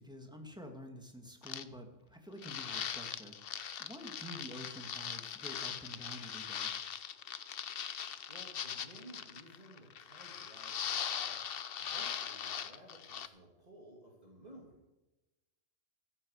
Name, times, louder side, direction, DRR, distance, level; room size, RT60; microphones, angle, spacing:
voice 1, 0.0-3.4 3.8-6.7, equal, 5° right, 3 dB, 2.0 m, -49 dB
sound 1, 1.4-1.6 2.4-13.3, left 8 dB, 55° left, 0.9 m, -40 dB
voice 2, 7.8-11.4 11.8-15.0, right 1 dB, 35° right, -2 dB, 2.7 m, -56 dB
15.0 x 8.7 x 6.5 m, 1.0 s
omnidirectional pair, 1.3 m